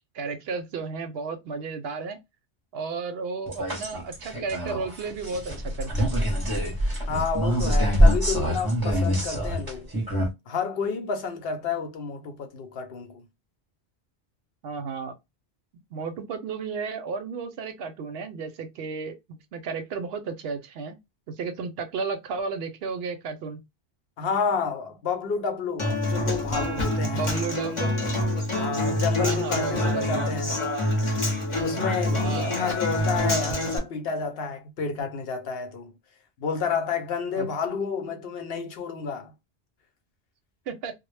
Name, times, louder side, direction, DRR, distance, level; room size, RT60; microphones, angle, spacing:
voice 1, 0.0-2.2 2.7-6.1 14.6-15.2 15.9-21.0 21.3-23.6 27.1-28.0 29.2-30.3 32.2-32.6 37.3-37.5 40.7-40.9, right 5 dB, 70° right, 0.8 m, -33 dB
sound 1, 3.5-10.3, equal, 25° right, 0.7 m, -24 dB
voice 2, 7.1-9.9 10.5-13.3 24.2-27.3 28.6-30.6 31.6-35.9 36.4-39.3, left 5 dB, 65° left, 0.8 m, -30 dB
Human voice / Acoustic guitar, 25.8-33.8, left 1 dB, 35° left, 0.7 m, -26 dB
2.1 x 2.0 x 3.1 m
omnidirectional pair, 1.1 m